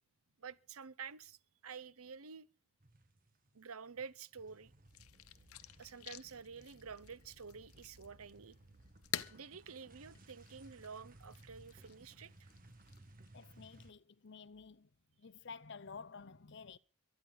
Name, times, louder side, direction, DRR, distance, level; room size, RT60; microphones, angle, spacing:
voice 1, 0.4-2.5 3.5-4.7 5.8-8.6 9.3-12.5, right 6 dB, 80° right, 0.8 m, -50 dB
sound 1, 2.8-3.6 3.8-13.9, right 1 dB, 40° right, 1.6 m, -61 dB
sound 2, 4.9-13.8, left 11 dB, 80° left, 0.8 m, -50 dB
voice 2, 13.3-14.9 15.2-16.8, left 5 dB, 50° left, 0.6 m, -52 dB
23.5 x 9.8 x 4.0 m
head